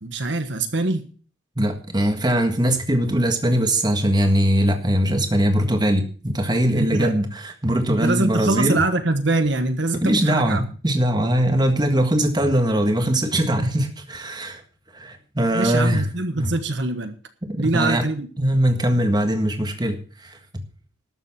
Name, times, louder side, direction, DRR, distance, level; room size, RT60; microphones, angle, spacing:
voice 1, 0.0-1.0 6.8-7.2 7.9-10.6 15.5-17.2 17.6-18.3, right 2 dB, 65° right, 8 dB, 1.3 m, -23 dB
voice 2, 1.6-8.8 9.9-14.6 14.9-16.0 16.4-16.5 17.4-18.1 18.4-20.4, right 1 dB, 20° right, 6 dB, 1.7 m, -21 dB
12.5 x 7.3 x 7.4 m, 0.40 s
head